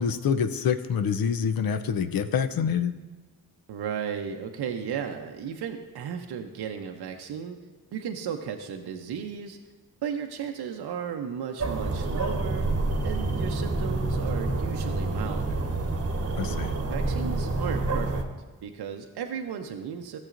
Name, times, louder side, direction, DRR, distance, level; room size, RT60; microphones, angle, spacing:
voice 1, 0.0-2.9 16.4-16.7, left 7 dB, 60° left, 10 dB, 0.6 m, -26 dB
voice 2, 3.7-7.6 7.9-9.6 10.0-12.7 13.0-15.7 16.4-18.3 18.6-20.2, right 7 dB, 75° right, 4 dB, 0.7 m, -35 dB
sound 1, 11.6-18.2, right 2 dB, 35° right, 1.1 m, -28 dB
14.0 x 7.5 x 2.5 m, 1.2 s
cardioid pair, 60°, 40 cm